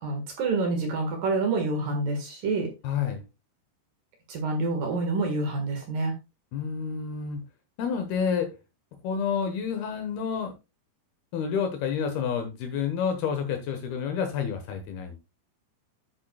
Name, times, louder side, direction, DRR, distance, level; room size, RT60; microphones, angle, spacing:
voice 1, 0.0-2.7 4.3-6.1, right 3 dB, 60° right, 3 dB, 2.8 m, -27 dB
voice 2, 2.8-3.2 6.5-7.4 7.8-8.5 9.0-10.5 11.3-15.2, left 7 dB, 70° left, 6 dB, 2.7 m, -29 dB
10.0 x 8.3 x 2.3 m, 0.26 s
omnidirectional pair, 5.2 m